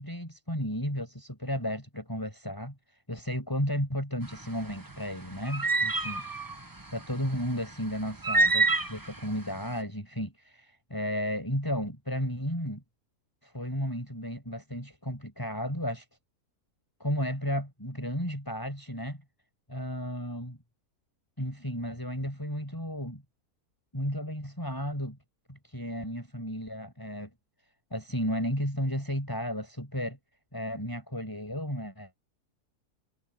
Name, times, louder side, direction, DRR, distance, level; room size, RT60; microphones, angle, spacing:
voice 1, 0.0-2.8 3.1-6.3 6.9-12.8 13.4-16.1 17.0-19.2 19.7-20.6 21.4-23.2 23.9-25.2 25.5-27.3 27.9-30.2 30.5-32.1, equal, 15° left, 7.1 m, -33 dB
sound 1, 4.2-9.7, right 3 dB, 15° right, 1.1 m, -27 dB
omnidirectional pair, 1.6 m